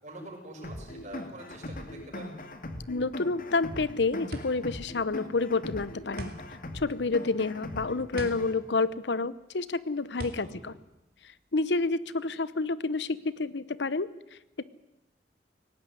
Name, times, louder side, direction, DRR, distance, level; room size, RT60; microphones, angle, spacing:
voice 1, 0.0-2.3 10.4-10.7, right 1 dB, 45° right, 0 dB, 6.8 m, -45 dB
sound 1, 0.6-8.6, left 1 dB, 50° left, 2.3 m, -40 dB
voice 2, 2.9-6.3 6.7-10.7 11.5-14.6, left 3 dB, 80° left, 18 dB, 0.8 m, -29 dB
sound 2, 4.3-11.8, right 1 dB, 60° right, 2.9 m, -44 dB
18.5 x 18.0 x 9.8 m, 0.96 s
head